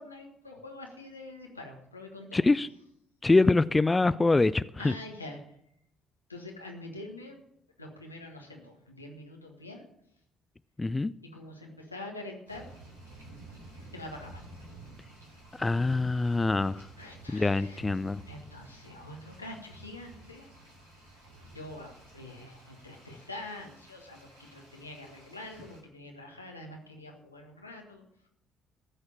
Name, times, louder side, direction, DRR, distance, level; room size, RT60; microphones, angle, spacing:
voice 1, 0.0-2.4 4.8-5.4 6.3-7.4 7.8-9.8 11.2-12.7 13.9-14.4 17.0-17.9 18.3-20.4 21.5-28.3, left 2 dB, 90° left, 1.5 m, -45 dB
voice 2, 2.3-2.7 3.2-4.9 10.8-11.1 15.6-16.9 17.3-18.2, left 3 dB, 20° left, 0.4 m, -24 dB
sound 1, 12.5-25.8, right 2 dB, 85° right, 3.3 m, -52 dB
15.0 x 6.6 x 7.2 m
figure-of-eight pair, 50°, 0 cm